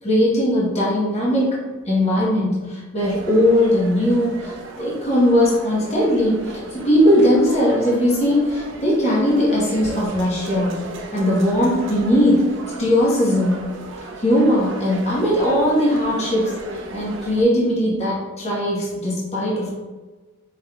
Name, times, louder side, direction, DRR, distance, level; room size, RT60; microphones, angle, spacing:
voice 1, 0.0-1.5 1.9-10.8 11.1-12.4 12.8-13.6 14.2-19.7, equal, 30° left, -6 dB, 1.0 m, -19 dB
sound 1, 3.0-17.4, right 2 dB, 55° right, 0.5 m, -36 dB
4.9 x 3.6 x 2.3 m, 1.3 s
head